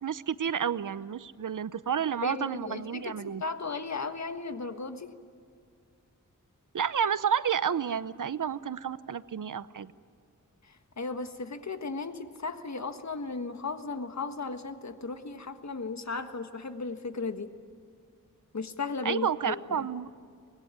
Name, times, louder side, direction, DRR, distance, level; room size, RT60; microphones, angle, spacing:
voice 1, 0.0-3.4 6.7-9.9 19.0-20.1, right 8 dB, 70° right, 16 dB, 0.8 m, -30 dB
voice 2, 2.2-3.1 3.4-5.1 10.6-17.5 18.5-19.9, left 4 dB, 55° left, 8 dB, 1.6 m, -36 dB
24.5 x 20.5 x 9.7 m, 2.2 s
wide cardioid pair, 75°, 32 cm